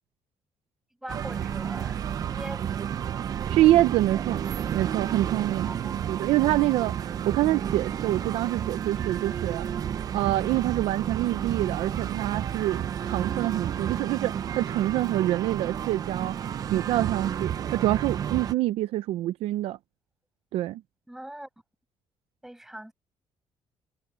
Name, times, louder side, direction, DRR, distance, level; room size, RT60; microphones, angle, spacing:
voice 1, 1.0-3.0 5.6-6.2 21.1-21.5 22.4-22.9, right 1 dB, 5° right, 6.2 m, -42 dB
sound 1, 1.1-18.5, right 9 dB, 40° right, 0.7 m, -31 dB
voice 2, 3.5-4.4 4.7-16.4 16.7-19.8 20.5-20.8, right 15 dB, 85° right, 0.6 m, -26 dB
cardioid pair, 165°, 10 cm